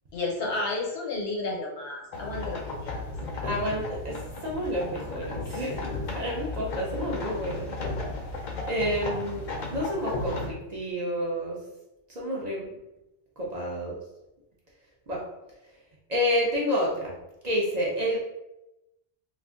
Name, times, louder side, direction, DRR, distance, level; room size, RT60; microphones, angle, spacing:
voice 1, 0.1-3.0, left 2 dB, 80° left, -1 dB, 1.0 m, -32 dB
sound 1, 2.1-10.5, left 2 dB, 55° left, 0.6 m, -34 dB
voice 2, 3.4-4.1 4.4-5.8 6.1-7.7 8.6-11.6 12.1-12.7 13.4-13.9 15.1-15.2 16.1-17.1 17.4-18.2, equal, 45° right, -4 dB, 0.6 m, -29 dB
2.4 x 2.4 x 3.5 m, 0.94 s
omnidirectional pair, 1.1 m